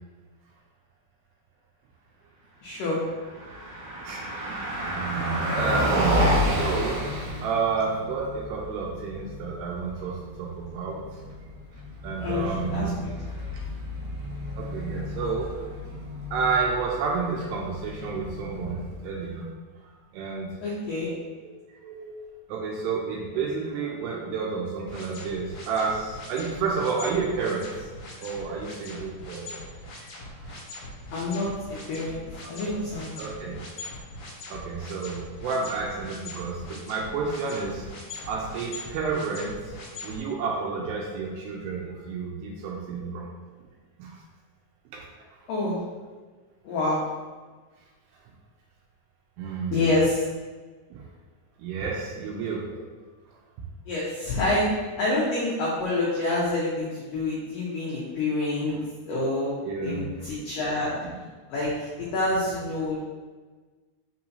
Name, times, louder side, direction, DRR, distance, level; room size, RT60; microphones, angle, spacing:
voice 1, 2.6-3.0 12.2-13.1 20.6-21.2 31.1-33.5 45.5-45.8 46.6-47.1 49.7-50.2 53.9-54.7 55.0-58.7 59.1-60.9 61.5-63.0, left 2 dB, 85° left, -6 dB, 1.9 m, -27 dB
Car passing by, 3.1-19.2, equal, 65° right, 2.8 m, -31 dB
voice 2, 4.0-11.0 12.0-13.0 13.5-13.7 14.5-15.6 16.3-19.5 19.8-20.5 21.4-21.6 21.8-22.2 22.5-27.9 28.2-29.6 30.0-30.5 32.4-32.6 33.2-33.6 34.5-37.9 38.3-43.3 44.0-44.2 44.9-45.4 49.4-49.8 50.9-51.1 51.6-52.7 53.3-53.4 59.6-60.1, right 5 dB, 85° right, -1 dB, 2.5 m, -31 dB
sound 1, 24.9-40.2, left 2 dB, 55° left, 1.9 m, -41 dB
6.1 x 5.7 x 2.7 m, 1.4 s
omnidirectional pair, 5.4 m